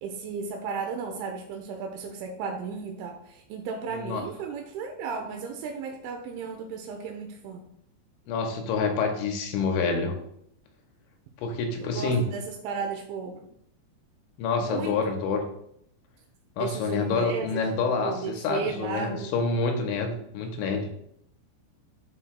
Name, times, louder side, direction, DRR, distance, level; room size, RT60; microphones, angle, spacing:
voice 1, 0.0-7.6 11.8-13.4 14.6-15.0 16.6-17.7 18.0-19.3, right 5 dB, 85° right, 3 dB, 3.1 m, -34 dB
voice 2, 8.3-10.2 11.4-12.2 14.4-15.4 16.6-20.9, left 4 dB, 90° left, 3 dB, 3.1 m, -27 dB
12.0 x 4.2 x 2.3 m, 0.72 s
omnidirectional pair, 5.3 m